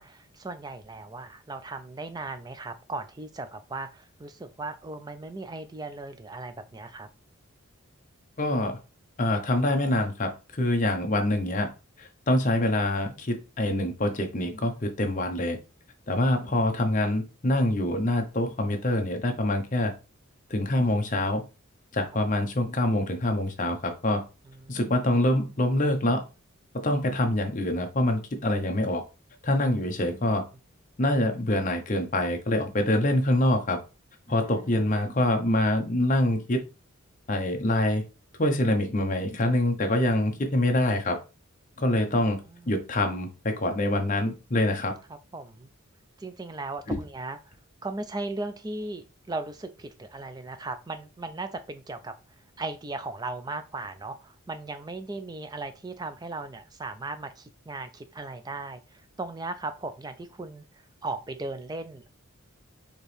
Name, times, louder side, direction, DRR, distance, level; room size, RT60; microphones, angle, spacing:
voice 1, 0.0-7.1 16.4-16.6 22.3-22.4 24.5-24.9 30.1-30.4 34.3-34.8 41.9-42.0 42.5-42.8 45.1-45.7 46.2-47.4 47.8-52.1 52.6-60.6 61.0-62.1, right 2 dB, 20° right, 9 dB, 0.3 m, -37 dB
voice 2, 8.4-8.8 9.2-11.7 12.0-15.6 16.1-19.9 20.5-21.4 21.9-24.2 24.7-26.2 26.7-29.0 29.4-30.4 31.0-33.8 34.3-36.6 37.3-38.0 38.4-41.2 41.8-42.4 42.7-45.0 46.9-47.0, left 1 dB, 35° left, 4 dB, 0.7 m, -25 dB
4.3 x 2.9 x 3.3 m, 0.30 s
head